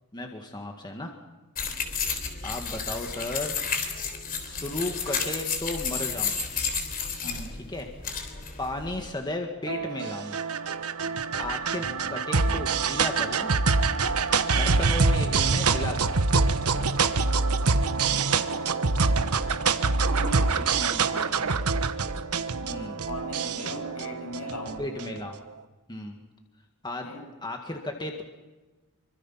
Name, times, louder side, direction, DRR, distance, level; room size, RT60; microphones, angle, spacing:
voice 1, 0.1-1.1 2.4-3.6 4.4-6.4 7.7-7.9 8.6-10.4 11.4-13.5 14.5-16.3 22.6-23.0 24.8-25.4 25.9-26.2 26.8-27.1 27.4-28.2, left 1 dB, 20° left, 3 dB, 2.0 m, -34 dB
sound 1, 1.6-9.1, left 5 dB, 40° left, 3.6 m, -32 dB
voice 2, 7.2-7.6 11.8-11.9 20.1-21.5 23.1-24.9 27.0-27.3, left 1 dB, 75° left, 2 dB, 7.6 m, -38 dB
sound 2, 9.7-25.2, right 4 dB, 85° right, 1.2 m, -25 dB
25.5 x 25.0 x 5.9 m, 1.2 s
head